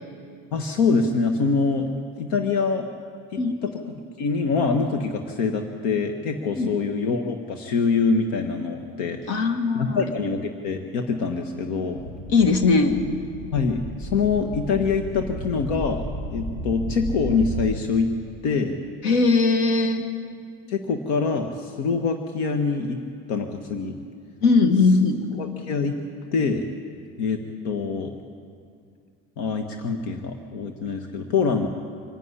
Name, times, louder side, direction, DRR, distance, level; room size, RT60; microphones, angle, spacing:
voice 1, 0.5-1.9 2.2-2.9 3.6-9.2 9.7-12.0 13.5-16.0 16.3-18.1 18.4-18.8 20.7-23.0 23.3-23.9 25.3-26.0 26.3-26.6 27.2-28.1 29.4-31.7, left 4 dB, 80° left, 5 dB, 1.5 m, -25 dB
voice 2, 9.3-10.0 12.3-13.0 19.0-20.1 24.4-25.3, left 3 dB, 65° left, 7 dB, 1.9 m, -19 dB
sound 1, 11.9-17.8, equal, 25° left, 1.3 m, -34 dB
25.0 x 11.5 x 9.8 m, 2.2 s
cardioid pair, 175°, 31 cm